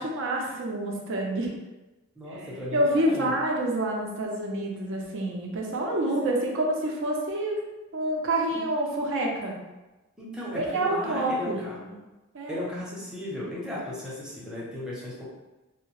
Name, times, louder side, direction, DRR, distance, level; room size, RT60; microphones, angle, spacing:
voice 1, 0.0-1.5 2.4-7.6 7.9-9.6 10.5-11.7 12.3-12.6, right 1 dB, 60° right, 0 dB, 0.5 m, -27 dB
voice 2, 2.2-3.3 5.9-6.4 8.5-8.6 10.2-12.0 12.5-15.2, left 1 dB, 5° right, -7 dB, 0.6 m, -36 dB
2.7 x 2.1 x 3.0 m, 1.1 s
head